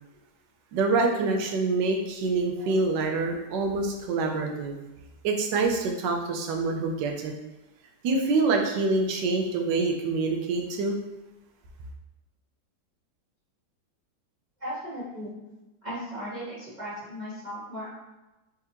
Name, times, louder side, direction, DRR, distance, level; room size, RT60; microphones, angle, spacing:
voice 1, 0.7-4.8 5.2-7.3 8.0-11.0, right 3 dB, 80° right, 2 dB, 1.3 m, -26 dB
voice 2, 14.6-15.3 15.8-17.9, equal, 25° right, -9 dB, 1.6 m, -36 dB
3.6 x 3.3 x 2.9 m, 1.0 s
omnidirectional pair, 1.9 m